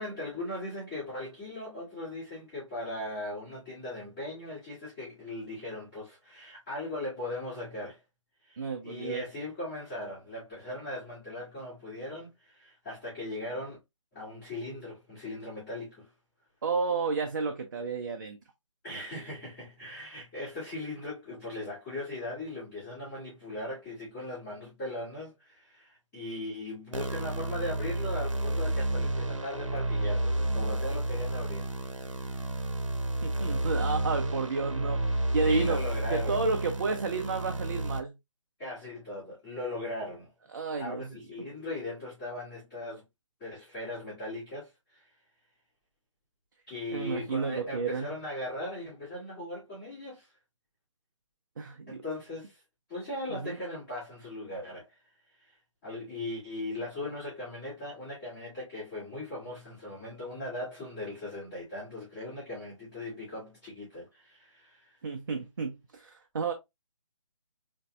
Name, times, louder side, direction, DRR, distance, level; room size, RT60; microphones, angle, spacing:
voice 1, 0.0-8.0 8.4-13.8 14.1-16.1 18.8-31.7 32.2-32.5 35.5-36.7 38.6-40.3 40.8-43.0 43.4-45.1 46.7-50.3 51.9-52.6 52.9-55.0 55.4-55.6 55.8-65.0, left 1 dB, 20° left, 2.0 m, -39 dB
voice 2, 8.6-9.2 16.6-18.4 33.2-35.8 36.1-38.1 40.5-41.1 46.9-48.1 51.6-52.0 53.3-53.6 65.0-66.5, right 4 dB, 40° right, 0.4 m, -31 dB
sound 1, 26.9-38.0, right 1 dB, 70° right, 0.7 m, -31 dB
3.8 x 2.6 x 2.2 m
figure-of-eight pair, 145°, 17 cm